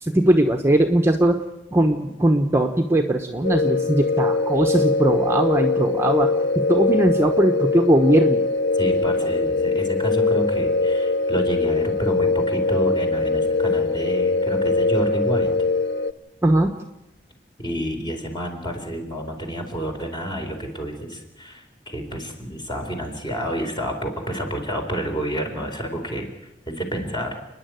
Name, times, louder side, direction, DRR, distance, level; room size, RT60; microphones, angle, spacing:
voice 1, 0.0-1.4 1.7-6.3 6.5-8.5 16.4-16.8, right 1 dB, 15° right, 4 dB, 1.1 m, -19 dB
sound 1, 3.4-16.1, left 3 dB, 80° left, 0.7 m, -22 dB
voice 2, 8.8-15.6 17.6-26.3 26.7-27.4, right 1 dB, 25° left, 3 dB, 4.1 m, -29 dB
30.0 x 10.5 x 9.3 m, 0.95 s
head